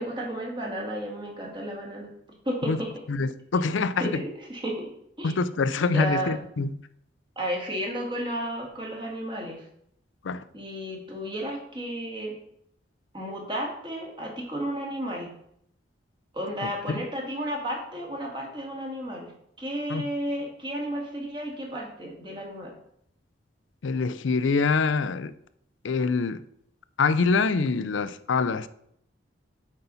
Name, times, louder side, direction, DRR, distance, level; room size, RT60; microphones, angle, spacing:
voice 1, 0.0-2.1 2.4-2.9 4.0-4.9 5.2-5.3 5.9-6.4 7.4-9.6 10.5-12.3 13.1-15.3 16.3-19.3 19.6-22.7, equal, 25° right, 2.1 m, -33 dB
voice 2, 3.1-4.2 5.2-6.7 10.2-10.4 16.9-17.0 19.9-20.0 23.8-25.3 25.8-26.4 27.0-28.7, left 4 dB, 75° left, 0.5 m, -25 dB
8.0 x 4.1 x 5.5 m
head